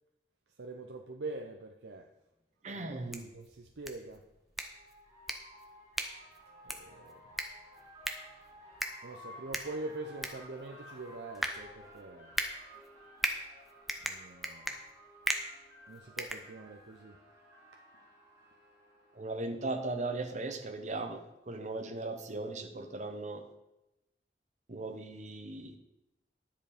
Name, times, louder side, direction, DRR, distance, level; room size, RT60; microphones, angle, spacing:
voice 1, 0.6-2.1 2.7-4.2 6.6-7.2 9.0-12.3 14.0-14.8 15.9-17.2, right 2 dB, 75° right, 3 dB, 0.7 m, -44 dB
sound 1, 2.4-2.5 3.9-19.5, equal, 20° right, 2.9 m, -55 dB
voice 2, 2.6-3.3 19.2-23.4 24.7-25.8, right 2 dB, 40° right, 6 dB, 1.0 m, -38 dB
sound 2, 2.9-17.0, equal, ahead, 0.7 m, -40 dB
10.5 x 7.1 x 5.1 m, 0.92 s
head